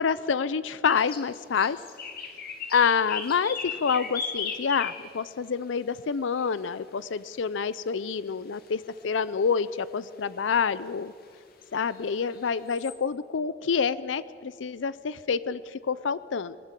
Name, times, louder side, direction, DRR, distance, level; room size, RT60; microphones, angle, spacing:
voice 1, 0.0-1.8 2.7-11.1 11.7-16.6, left 6 dB, 85° left, 17 dB, 0.5 m, -27 dB
sound 1, 0.8-1.3 1.5-5.2 6.4-6.5 7.7-7.8 8.7-8.8 9.0-9.1 9.6-9.7 11.2-11.3 11.9-12.9, left 6 dB, 55° left, 2.1 m, -36 dB
21.0 x 19.0 x 7.5 m, 2.3 s
head